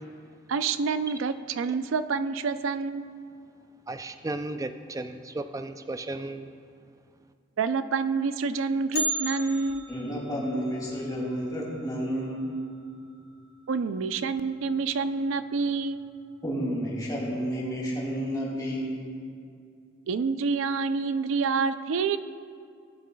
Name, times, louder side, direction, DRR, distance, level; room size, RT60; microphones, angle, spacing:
voice 1, 0.5-3.1 7.6-9.8 13.7-16.0 20.1-22.2, right 4 dB, 90° right, 12 dB, 0.4 m, -27 dB
voice 2, 3.9-6.5, right 2 dB, 15° right, 9 dB, 0.3 m, -35 dB
Bell, 8.9-13.0 13.3-13.4 13.9-14.0 14.8-14.9 15.6-15.9 16.3-16.4, equal, 55° left, 2.5 m, -36 dB
voice 3, 9.9-12.6 14.0-14.1 16.4-18.9, equal, 20° left, -5 dB, 2.4 m, -31 dB
18.0 x 8.3 x 2.2 m, 2.3 s
head